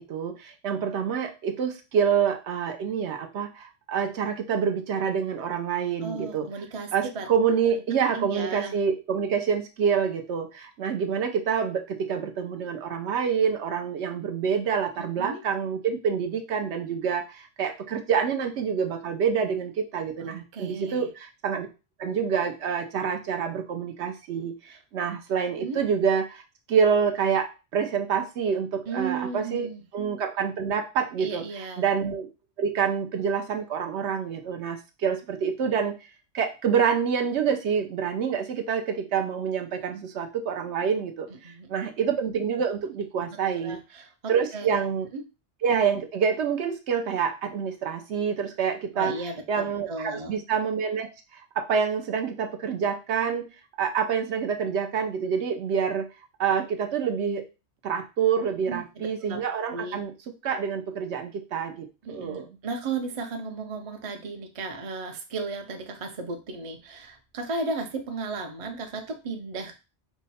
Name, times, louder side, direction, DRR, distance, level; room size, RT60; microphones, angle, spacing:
voice 1, 0.0-6.5 6.9-21.7 22.0-26.4 26.7-29.7 29.9-32.3 32.6-35.9 36.3-43.8 44.3-45.1 45.6-49.1 49.5-53.5 53.8-56.1 56.4-57.5 57.8-60.1 60.4-62.5, right 7 dB, 70° right, 5 dB, 0.9 m, -27 dB
voice 2, 6.0-7.3 8.1-8.8 15.0-15.4 20.2-21.1 24.7-24.8 25.6-25.8 28.9-29.8 31.2-31.8 41.4-41.9 43.1-43.2 43.5-44.1 44.5-44.7 45.1-45.2 48.9-50.3 58.7-59.4 59.7-60.0 62.0-69.8, right 3 dB, 40° right, 5 dB, 0.5 m, -35 dB
4.6 x 2.1 x 4.1 m, 0.29 s
omnidirectional pair, 1.3 m